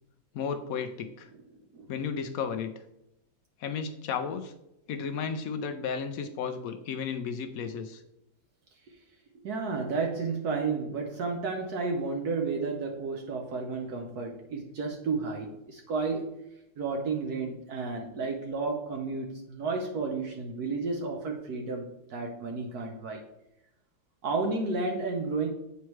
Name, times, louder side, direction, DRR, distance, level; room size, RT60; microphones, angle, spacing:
voice 1, 0.3-1.3 1.9-2.7 3.6-4.5 4.9-8.0, left 6 dB, 70° left, 7 dB, 0.8 m, -33 dB
voice 2, 9.4-16.3 16.8-23.2 24.2-25.5, right 4 dB, 65° right, 2 dB, 1.2 m, -32 dB
8.3 x 4.5 x 3.1 m, 0.84 s
omnidirectional pair, 1.9 m